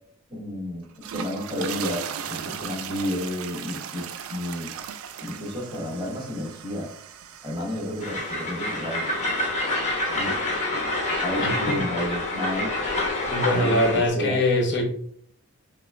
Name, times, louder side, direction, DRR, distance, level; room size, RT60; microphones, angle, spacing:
voice 1, 0.3-0.8 1.1-4.0 4.3-4.7 5.2-6.9 7.4-9.1 10.1-10.5 11.2-12.7 13.5-14.4, left 1 dB, 25° right, -2 dB, 1.2 m, -31 dB
sound 1, 0.8-9.2, right 8 dB, 70° right, 0.3 m, -37 dB
Train, 8.0-14.1, left 1 dB, 35° left, 1.0 m, -27 dB
voice 2, 11.4-11.8 13.3-14.9, left 1 dB, 55° left, 1 dB, 0.9 m, -23 dB
5.8 x 2.3 x 2.4 m, 0.62 s
head